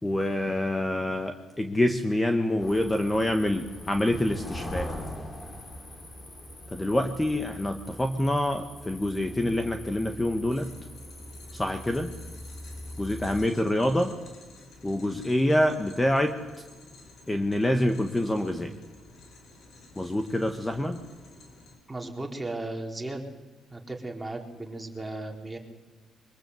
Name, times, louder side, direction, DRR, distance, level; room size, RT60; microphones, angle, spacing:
voice 1, 0.0-4.9 6.7-10.7 11.5-12.1 13.0-14.1 14.8-16.3 17.3-18.7 19.9-21.0, left 1 dB, 15° left, 6 dB, 1.6 m, -26 dB
sound 1, 2.6-13.5, left 1 dB, 30° left, 4.2 m, -41 dB
sound 2, 10.5-21.8, left 2 dB, 70° left, 5.6 m, -52 dB
voice 2, 21.9-23.2 23.7-25.6, right 2 dB, 15° right, 1 dB, 3.8 m, -36 dB
23.0 x 21.5 x 8.0 m, 1.2 s
cardioid pair, 90°, 0 cm